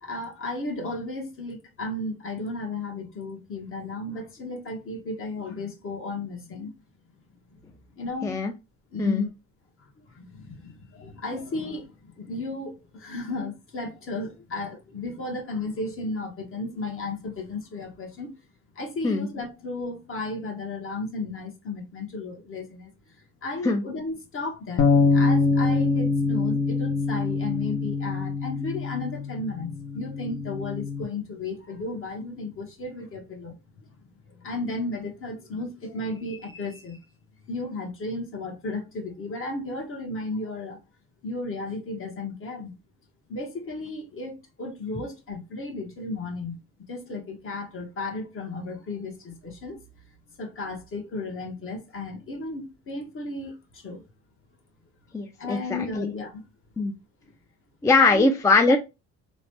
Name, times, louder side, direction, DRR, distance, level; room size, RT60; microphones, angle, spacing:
voice 1, 0.0-6.7 7.5-7.6 8.0-8.4 8.9-9.3 10.0-18.3 18.7-22.9 23.4-33.9 34.3-37.0 37.5-40.8 41.2-42.7 43.3-46.6 46.9-49.8 50.4-54.0 55.4-56.4 58.0-58.3 58.7-58.8, left 2 dB, 45° left, 1.0 m, -34 dB
sound 1, 24.8-31.0, left 4 dB, 60° left, 0.7 m, -24 dB
voice 2, 55.1-56.1 56.8-56.9 57.8-58.8, left 3 dB, 10° left, 0.3 m, -21 dB
3.1 x 2.1 x 2.9 m
cardioid pair, 90°, 30 cm